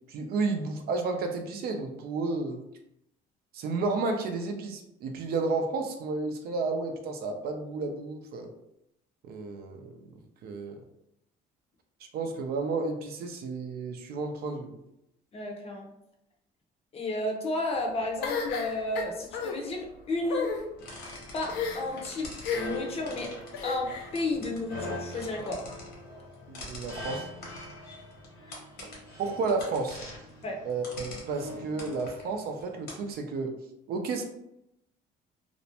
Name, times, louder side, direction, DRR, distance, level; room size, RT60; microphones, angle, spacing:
voice 1, 0.1-2.6 3.5-8.5 9.2-10.0 10.4-10.8 12.1-14.8 26.5-27.3 29.2-30.0 30.6-33.6 33.9-34.2, right 3 dB, 65° right, 4 dB, 0.4 m, -32 dB
voice 2, 15.3-15.9 16.9-20.6 21.3-25.7 30.4-30.6, left 2 dB, 35° left, 1 dB, 0.6 m, -32 dB
sound 1, 18.2-19.5 20.2-20.6 21.5-22.0 22.4-22.9 23.5-24.1, left 5 dB, 90° left, 0.5 m, -32 dB
sound 2, 20.8-33.1, left 1 dB, 70° left, 1.0 m, -42 dB
2.4 x 2.0 x 2.8 m, 0.81 s
cardioid pair, 110°, 17 cm